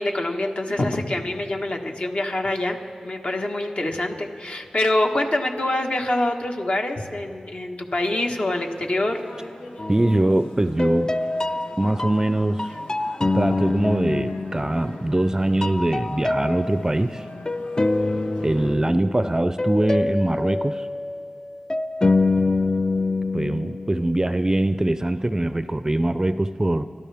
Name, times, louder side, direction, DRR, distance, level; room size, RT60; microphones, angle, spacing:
voice 1, 0.0-2.8 3.0-9.2, left 1 dB, 55° left, 3 dB, 1.6 m, -25 dB
sound 1, 8.0-18.7, left 2 dB, 85° left, 1.6 m, -44 dB
sound 2, 9.8-10.4 10.8-15.4 15.6-24.4, left 2 dB, 30° left, 0.4 m, -26 dB
voice 2, 9.9-11.1 11.8-12.7 13.3-17.3 18.4-20.9 23.3-26.8, right 1 dB, 25° right, 12 dB, 0.5 m, -22 dB
29.5 x 12.5 x 3.5 m, 2.4 s
cardioid pair, 50°, 2 cm